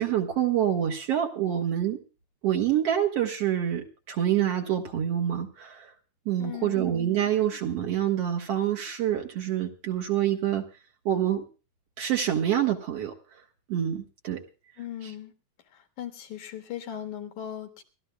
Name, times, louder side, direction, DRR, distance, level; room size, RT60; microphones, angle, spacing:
voice 1, 0.0-2.0 2.4-5.9 6.3-10.6 11.1-11.4 12.0-13.1 13.7-14.4 15.0-15.1, right 10 dB, 60° right, 2 dB, 2.2 m, -26 dB
voice 2, 6.4-6.9 14.8-15.3 16.0-17.8, left 10 dB, 85° left, 5 dB, 3.1 m, -38 dB
29.0 x 13.0 x 2.3 m, 0.34 s
omnidirectional pair, 3.4 m